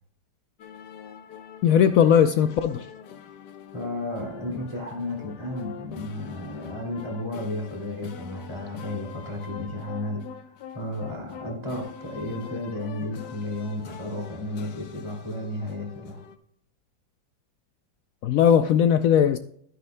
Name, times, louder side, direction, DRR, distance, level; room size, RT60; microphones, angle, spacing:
sound 1, 0.6-16.4, left 8 dB, 70° left, 1.3 m, -44 dB
voice 1, 1.6-2.9 18.2-19.4, left 8 dB, 85° left, 0.7 m, -19 dB
voice 2, 3.7-10.2 10.7-16.2, left 1 dB, 15° right, 2.7 m, -33 dB
13.0 x 9.7 x 2.2 m
omnidirectional pair, 2.0 m